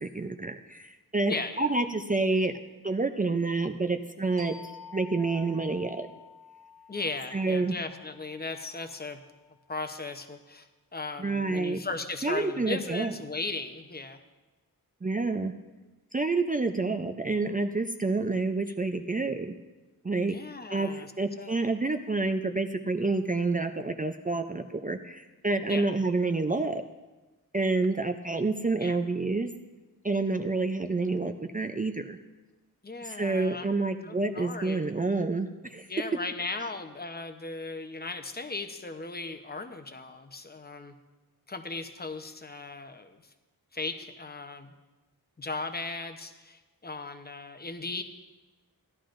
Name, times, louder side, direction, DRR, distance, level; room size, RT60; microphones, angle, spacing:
voice 1, 0.0-2.5 2.8-4.6 4.9-6.1 7.3-7.8 11.2-11.8 12.2-13.1 15.0-15.5 16.1-19.5 20.0-20.4 20.7-26.8 27.5-29.5 30.0-32.2 33.0-35.9, right 3 dB, 25° right, 6 dB, 0.5 m, -28 dB
voice 2, 1.3-1.7 6.9-9.2 9.7-14.2 20.3-21.1 21.4-21.8 25.7-25.9 28.8-29.0 32.8-33.7 34.0-34.8 35.9-40.9 41.5-43.2 43.7-44.7 45.4-48.0, left 3 dB, 25° left, 7 dB, 0.8 m, -37 dB
sound 1, 4.4-9.7, left 5 dB, 80° right, 1.5 m, -50 dB
15.5 x 11.0 x 2.6 m, 1.1 s
wide cardioid pair, 95°, 37 cm